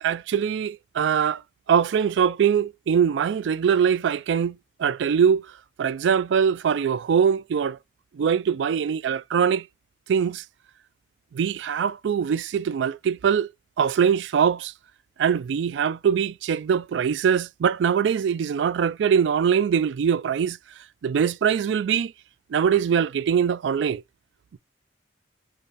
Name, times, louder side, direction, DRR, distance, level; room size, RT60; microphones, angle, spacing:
voice 1, 0.0-1.4 1.7-5.4 5.8-7.8 8.1-9.6 10.1-10.4 11.3-13.5 13.8-14.7 15.2-20.6 21.0-22.1 22.5-24.0, right 7 dB, 70° right, 0.3 m, -22 dB
3.5 x 2.6 x 3.9 m
head